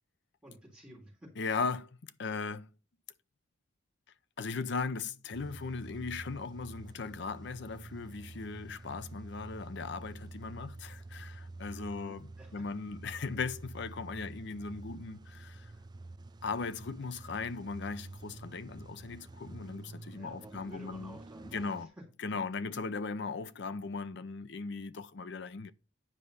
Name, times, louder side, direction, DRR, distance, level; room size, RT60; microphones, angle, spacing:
voice 1, 0.4-1.3 11.7-12.6 14.1-14.2 20.1-21.9, right 1 dB, 5° right, 3.6 m, -52 dB
voice 2, 1.4-2.7 4.4-15.7 16.4-21.2 21.5-21.9 22.2-25.7, left 4 dB, 65° left, 0.6 m, -38 dB
Car / Engine starting / Idling, 5.3-21.9, right 2 dB, 20° right, 0.3 m, -48 dB
9.8 x 4.9 x 5.5 m
head